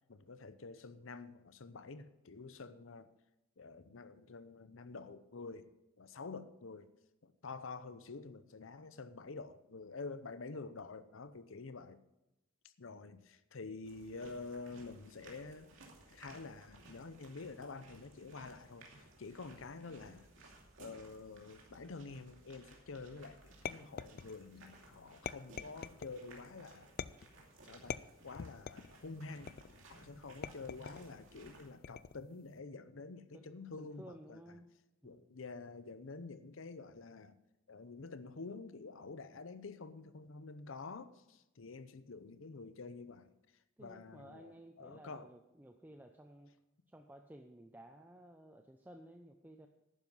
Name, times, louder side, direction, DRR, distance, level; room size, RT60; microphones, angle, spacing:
voice 1, 0.1-3.1 3.6-5.7 6.0-6.9 7.2-12.0 12.8-15.7 16.1-20.5 20.8-26.9 27.6-29.5 29.9-34.6 35.0-37.4 37.7-43.3 43.8-45.3, left 3 dB, 65° left, 13 dB, 0.7 m, -48 dB
sound 1, 13.8-31.7, right 2 dB, 65° right, 2.5 m, -59 dB
sound 2, 23.6-24.6 25.2-26.2 27.0-27.4 27.9-28.9 29.5-29.9 30.4-31.1 31.8-32.3, left 7 dB, 45° left, 0.3 m, -44 dB
voice 2, 33.3-34.7 35.0-35.4 43.8-46.5 46.9-49.7, right 1 dB, 10° right, 5 dB, 0.5 m, -55 dB
11.0 x 9.6 x 5.5 m, 0.93 s
head